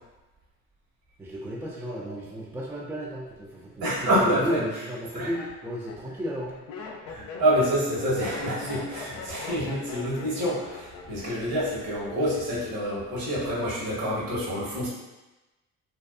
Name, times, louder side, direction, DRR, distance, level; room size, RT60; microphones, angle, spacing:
voice 1, 1.2-6.6, equal, 5° right, -4 dB, 0.4 m, -34 dB
voice 2, 3.8-4.6 5.1-5.3 7.1-14.9, equal, 60° right, -6 dB, 1.2 m, -27 dB
Laughter, 5.0-11.6 11.8-12.4, left 4 dB, 65° left, 0.5 m, -41 dB
2.6 x 2.2 x 2.3 m, 1.1 s
hypercardioid pair, 50°, 40 cm